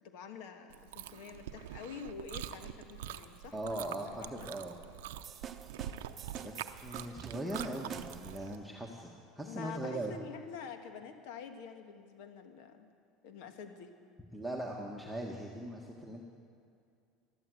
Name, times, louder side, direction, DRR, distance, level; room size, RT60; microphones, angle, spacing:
voice 1, 0.0-4.5 9.4-12.9 13.2-13.9, left 6 dB, 70° left, 7 dB, 1.4 m, -47 dB
Chewing mastication, 0.7-8.5, right 11 dB, 85° right, 0.6 m, -45 dB
voice 2, 3.5-4.8 6.4-9.1 9.3-10.1 14.3-16.3, right 1 dB, ahead, -3 dB, 1.6 m, -40 dB
sound 1, 5.2-8.5, right 7 dB, 35° right, 0.8 m, -46 dB
13.0 x 12.5 x 7.9 m, 2.4 s
supercardioid pair, 105°, 0 cm